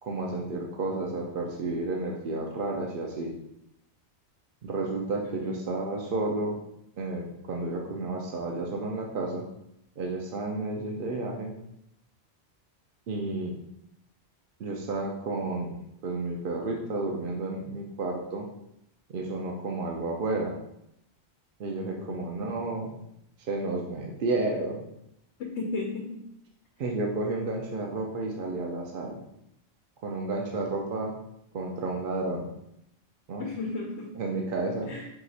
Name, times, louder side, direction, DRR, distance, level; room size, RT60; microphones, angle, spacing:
voice 1, 0.0-3.3 4.6-6.6 7.0-9.5 10.0-11.5 13.1-13.5 14.6-15.8 16.0-18.5 19.1-20.5 21.6-23.0 23.5-24.8 26.8-29.2 30.0-31.1 31.5-32.5 33.3-33.4 34.1-34.9, right 2 dB, 60° right, 0 dB, 0.8 m, -31 dB
voice 2, 5.2-5.7 21.9-22.3 25.4-26.2 33.4-34.1 34.9-35.1, left 3 dB, 85° left, 0 dB, 1.0 m, -35 dB
4.8 x 2.5 x 4.0 m, 0.78 s
omnidirectional pair, 1.1 m